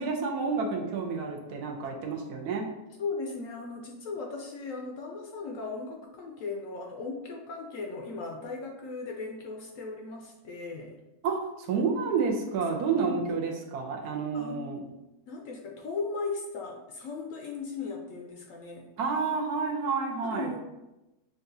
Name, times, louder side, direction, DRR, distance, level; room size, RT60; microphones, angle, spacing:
voice 1, 0.0-2.7 11.2-14.8 19.0-20.6, right 5 dB, 75° right, 0 dB, 1.2 m, -30 dB
voice 2, 3.0-11.0 12.9-13.3 14.3-14.8 15.3-18.9 20.2-20.6, left 4 dB, 70° left, 1 dB, 0.8 m, -37 dB
6.6 x 2.4 x 2.6 m, 0.99 s
omnidirectional pair, 1.7 m